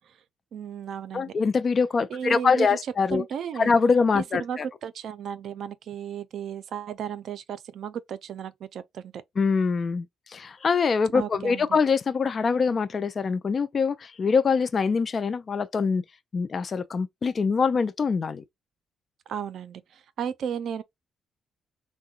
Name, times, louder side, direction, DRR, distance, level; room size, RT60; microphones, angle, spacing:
voice 1, 0.5-1.3 2.1-2.8 3.1-3.7 4.2-9.1 11.1-11.7 19.3-20.8, right 8 dB, 65° right, 0.4 m, -34 dB
voice 2, 1.1-3.2 3.6-4.6 9.4-16.0 16.3-18.4, left 5 dB, 40° left, 0.3 m, -24 dB
3.6 x 2.1 x 2.3 m
cardioid pair, 90°, 0 cm